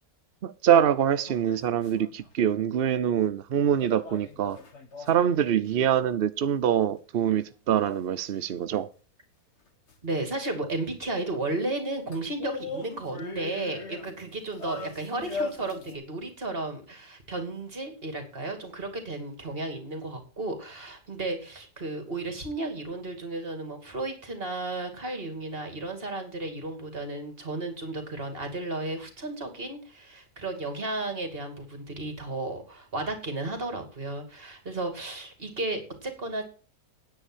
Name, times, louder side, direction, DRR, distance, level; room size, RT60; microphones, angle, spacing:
voice 1, 0.4-4.6 5.1-8.9, right 9 dB, 60° right, 0.6 m, -24 dB
sound 1, 1.1-2.3 3.8-5.4 9.9-10.0 12.1-16.0, left 3 dB, 45° left, 1.7 m, -39 dB
voice 2, 10.0-36.4, right 2 dB, 35° right, 2.7 m, -34 dB
9.9 x 8.3 x 6.2 m
omnidirectional pair, 1.8 m